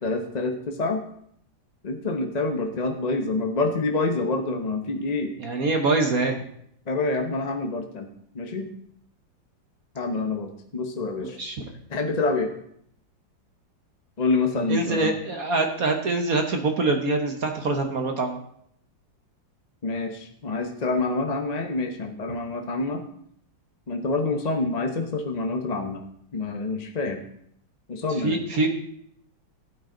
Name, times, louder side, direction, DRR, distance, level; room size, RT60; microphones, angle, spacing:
voice 1, 0.0-1.0 1.8-5.3 6.9-8.1 8.3-8.7 9.9-11.4 11.9-12.5 14.2-15.1 19.8-23.0 23.9-26.0 26.3-27.3 27.9-28.4, left 3 dB, 30° left, 4 dB, 0.7 m, -27 dB
voice 2, 5.4-6.4 11.2-11.7 14.7-18.4 28.2-28.7, right 3 dB, 55° right, 4 dB, 1.5 m, -24 dB
14.0 x 9.1 x 3.9 m, 0.70 s
omnidirectional pair, 2.0 m